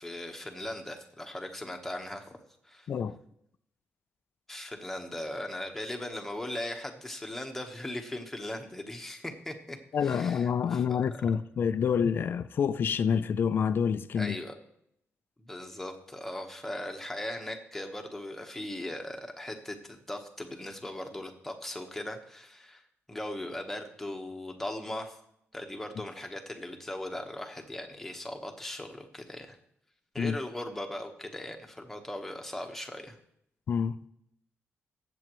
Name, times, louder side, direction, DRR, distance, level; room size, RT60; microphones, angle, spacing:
voice 1, 0.0-2.4 2.6-2.9 4.5-11.0 14.1-14.5 15.5-22.8 23.1-25.2 25.5-29.6 30.1-33.2, left 1 dB, 5° left, 1.2 m, -39 dB
voice 2, 9.9-14.4 30.2-30.4 33.7-34.0, left 7 dB, 50° left, 0.4 m, -27 dB
19.5 x 7.8 x 3.1 m
wide cardioid pair, 155°, 5 cm